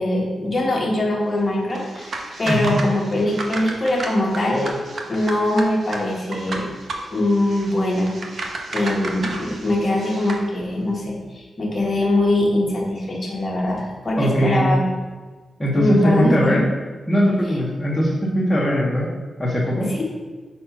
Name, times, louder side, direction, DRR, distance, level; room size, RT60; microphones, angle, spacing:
voice 1, 0.0-2.1 2.4-4.7 5.1-6.6 7.1-8.1 8.4-14.8 15.7-16.6 19.8-20.0, left 1 dB, 25° left, -2 dB, 1.2 m, -22 dB
sound 1, 1.7-10.5, right 2 dB, 50° right, 0.8 m, -33 dB
voice 2, 2.5-2.8 14.2-14.7 15.6-16.6 17.1-19.1 19.4-19.9, equal, 5° left, -6 dB, 1.0 m, -20 dB
4.9 x 4.2 x 5.7 m, 1.4 s
wide cardioid pair, 165°, 0 cm